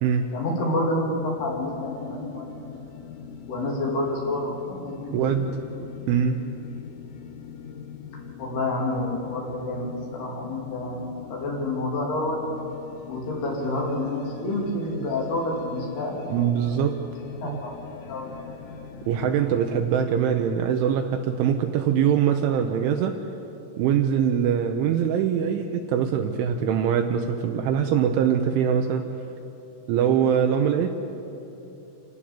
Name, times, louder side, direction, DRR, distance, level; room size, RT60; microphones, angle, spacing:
voice 1, 0.3-2.5 3.5-5.4 8.4-12.4 13.1-16.6 17.4-17.8 18.1-18.3, left 1 dB, 55° left, -1 dB, 4.6 m, -29 dB
sound 1, 1.2-20.1, left 7 dB, 75° left, 3.6 m, -41 dB
voice 2, 5.1-5.5 6.1-6.4 16.3-17.0 17.4-17.6 19.1-23.2 23.8-29.1 29.9-30.9, right 8 dB, 80° right, 5 dB, 3.0 m, -23 dB
28.0 x 17.0 x 7.2 m, 3.0 s
omnidirectional pair, 6.0 m